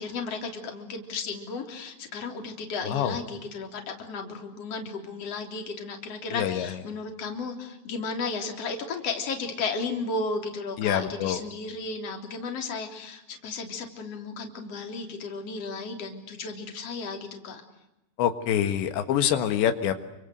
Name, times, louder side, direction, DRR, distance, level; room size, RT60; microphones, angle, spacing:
voice 1, 0.0-17.6, left 4 dB, 35° left, 4 dB, 4.1 m, -34 dB
voice 2, 6.3-6.7 10.8-11.4 18.2-19.9, left 10 dB, 85° left, 8 dB, 3.8 m, -25 dB
28.5 x 25.5 x 8.0 m, 0.92 s
omnidirectional pair, 5.0 m